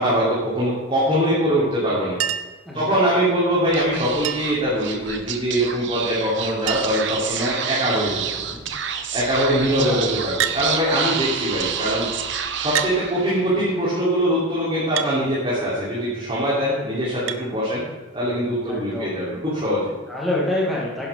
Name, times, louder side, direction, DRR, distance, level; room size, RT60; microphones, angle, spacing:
voice 1, 0.0-2.2 2.7-8.3 9.1-12.1 12.6-17.8 18.1-19.9, equal, 25° right, -9 dB, 3.5 m, -22 dB
Chink clink, 2.2-2.6 4.2-4.7 6.0-6.1 6.3-6.4 6.7-7.1 7.9-8.2 10.4-10.6 11.7-11.8 12.7-13.0 15.0-15.1 17.3-17.4 18.9-19.0, right 9 dB, 85° right, 0.7 m, -27 dB
voice 2, 2.6-3.0 8.5-8.7 9.7-10.1 18.7-19.1 20.1-21.1, left 1 dB, ahead, -5 dB, 1.6 m, -27 dB
Speech / Whispering, 3.7-13.5, right 8 dB, 65° right, 1.0 m, -29 dB
11.5 x 10.5 x 3.7 m, 1.3 s
head